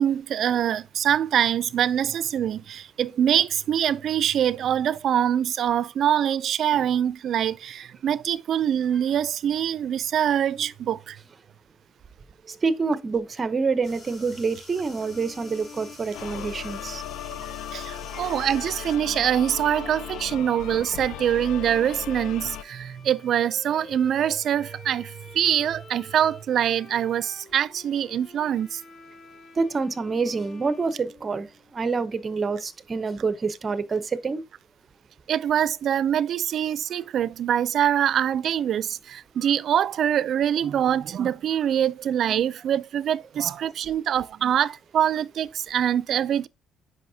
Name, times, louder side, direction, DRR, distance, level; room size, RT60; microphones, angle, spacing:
voice 1, 0.0-11.2 17.7-28.8 35.3-46.5, right 9 dB, 55° right, 0.4 m, -24 dB
voice 2, 12.5-17.0 18.1-18.3 29.5-34.4, right 4 dB, 30° right, 0.7 m, -27 dB
sound 1, 13.8-19.0, left 1 dB, 30° left, 4.7 m, -48 dB
sound 2, 14.9-31.7, left 3 dB, 50° left, 2.3 m, -47 dB
sound 3, 16.1-22.6, left 10 dB, 75° left, 0.4 m, -37 dB
9.1 x 5.4 x 2.7 m
cardioid pair, 115°, 0 cm